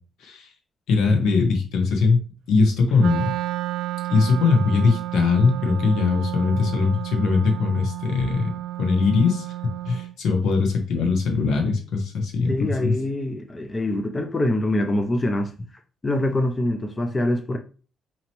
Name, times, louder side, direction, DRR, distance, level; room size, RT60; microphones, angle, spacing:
voice 1, 0.9-2.2 2.5-3.3 4.1-8.5 8.8-9.5 9.8-12.9, left 4 dB, 85° left, 1.1 m, -21 dB
Wind instrument woodwind instrument, 3.0-10.1, right 14 dB, 80° right, 0.3 m, -31 dB
voice 2, 12.5-15.7 16.0-17.6, left 1 dB, 20° left, 0.3 m, -24 dB
4.2 x 2.9 x 3.0 m
cardioid pair, 160°, 0 cm